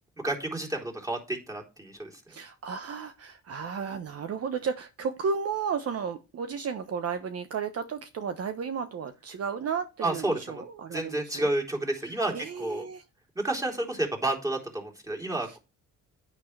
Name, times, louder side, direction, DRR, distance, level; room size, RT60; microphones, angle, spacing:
voice 1, 0.2-2.2 10.0-10.6 10.9-12.9 13.4-15.6, right 2 dB, 10° right, 0 dB, 3.7 m, -30 dB
voice 2, 2.3-11.5 12.1-13.0 15.5-15.6, right 6 dB, 55° right, 9 dB, 1.1 m, -33 dB
10.0 x 9.1 x 3.4 m, 0.28 s
cardioid pair, 90°, 30 cm